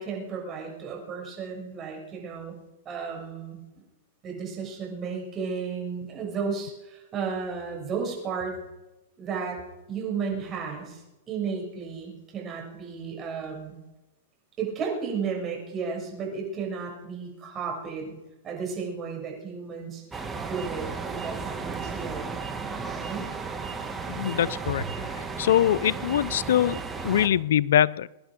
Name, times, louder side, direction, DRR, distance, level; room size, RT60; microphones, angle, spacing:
voice 1, 0.0-2.6 2.9-3.6 4.2-8.6 9.2-9.6 9.9-13.8 14.6-18.1 18.4-22.3 22.8-23.2, right 5 dB, 25° right, 0 dB, 7.1 m, -33 dB
sound 1, 20.1-27.3, right 4 dB, 10° right, 1.9 m, -34 dB
voice 2, 24.1-24.8 25.2-28.1, left 10 dB, 75° left, 20 dB, 0.4 m, -23 dB
24.0 x 10.5 x 5.1 m, 0.99 s
hypercardioid pair, 125°, 0 cm